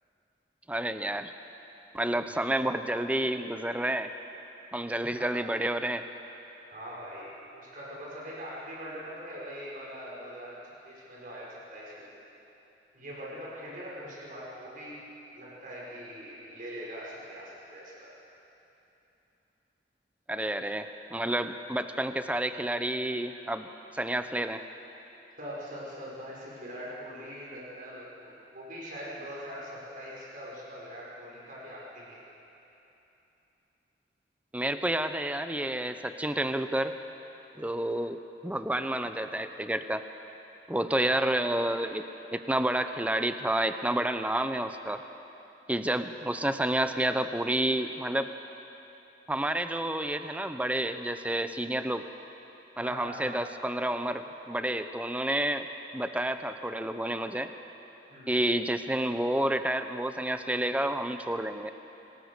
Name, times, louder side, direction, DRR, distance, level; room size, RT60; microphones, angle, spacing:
voice 1, 0.7-1.3 1.9-4.1 4.7-6.0 20.3-24.6 34.5-36.9 37.6-40.0 40.7-42.0 42.3-45.0 45.7-48.3 49.3-52.0 52.8-55.7 55.9-57.5 58.3-61.7, right 1 dB, 10° right, 9 dB, 0.7 m, -30 dB
voice 2, 6.7-12.1 12.9-15.0 15.3-18.1 25.4-32.2 41.1-41.4 52.7-53.4 58.1-58.4, equal, 50° right, -6 dB, 6.3 m, -42 dB
26.0 x 19.5 x 6.7 m, 3.0 s
head